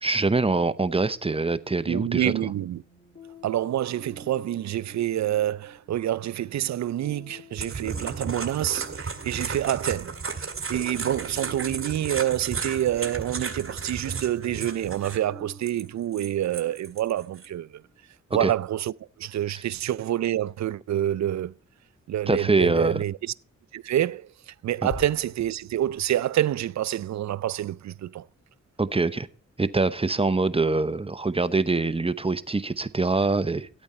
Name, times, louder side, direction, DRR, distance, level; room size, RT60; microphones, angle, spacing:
voice 1, 0.0-2.3 18.4-18.5 19.5-19.6 22.3-23.0 28.8-29.3 29.6-33.7, right 3 dB, 20° right, 0.8 m, -24 dB
voice 2, 1.9-2.8 3.4-17.8 18.3-21.5 22.1-23.3 23.7-28.2, right 12 dB, 70° right, 0.5 m, -27 dB
sound 1, 2.4-18.0, left 3 dB, 40° left, 3.1 m, -51 dB
sound 2, 7.6-15.2 15.6-17.5, right 5 dB, 45° right, 1.8 m, -34 dB
sound 3, 24.9-28.6 28.8-29.0, left 3 dB, 75° left, 3.8 m, -45 dB
13.5 x 8.7 x 4.3 m
cardioid pair, 65°, 29 cm